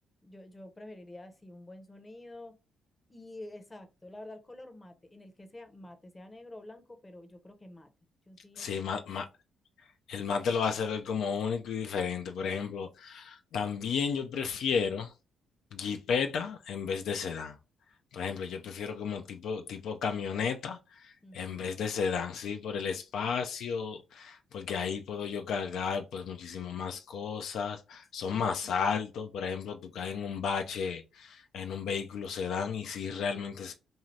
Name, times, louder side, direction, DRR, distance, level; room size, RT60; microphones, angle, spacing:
voice 1, 0.2-2.6 3.1-7.9 8.3-9.0 21.2-21.7, left 1 dB, 20° left, 0.7 m, -48 dB
voice 2, 8.6-9.3 10.1-15.1 15.7-17.6 18.1-33.7, left 6 dB, 75° left, 0.4 m, -33 dB
2.7 x 2.4 x 3.1 m
cardioid pair, 90°, 0 cm